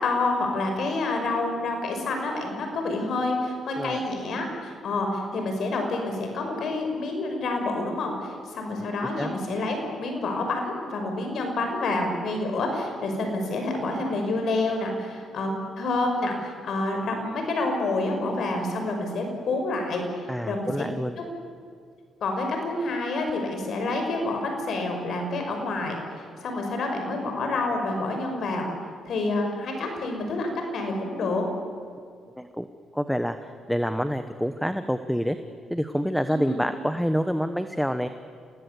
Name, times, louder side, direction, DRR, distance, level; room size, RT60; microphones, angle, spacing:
voice 1, 0.0-20.7 21.2-21.3 22.2-26.0 26.4-28.7 29.0-31.5 36.3-36.6, left 2 dB, 60° left, 4 dB, 5.8 m, -28 dB
voice 2, 20.3-21.2 32.4-32.7 32.9-35.4 35.7-38.1, equal, ahead, 9 dB, 1.1 m, -27 dB
27.5 x 18.5 x 8.4 m, 2.2 s
cardioid pair, 90°, 0 cm